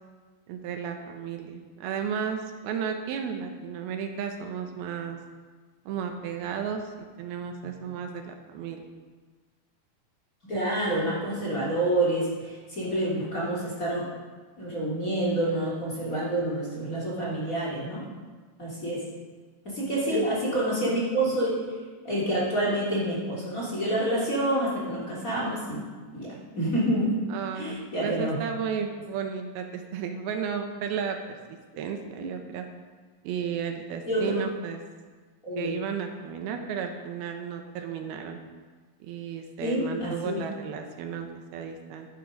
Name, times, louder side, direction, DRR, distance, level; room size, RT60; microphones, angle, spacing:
voice 1, 0.5-5.2 5.9-6.8 7.2-8.8 20.1-20.3 27.3-32.7 33.2-34.8 35.6-38.4 39.0-42.1, right 7 dB, 80° right, 5 dB, 2.9 m, -33 dB
voice 2, 10.4-14.1 14.6-18.0 18.6-19.0 19.6-21.6 22.0-25.9 26.1-27.2 27.5-28.4 32.2-32.3 34.1-34.4 35.4-35.7 39.6-40.4, right 1 dB, 25° left, -6 dB, 3.0 m, -28 dB
13.0 x 9.8 x 5.2 m, 1.4 s
omnidirectional pair, 4.4 m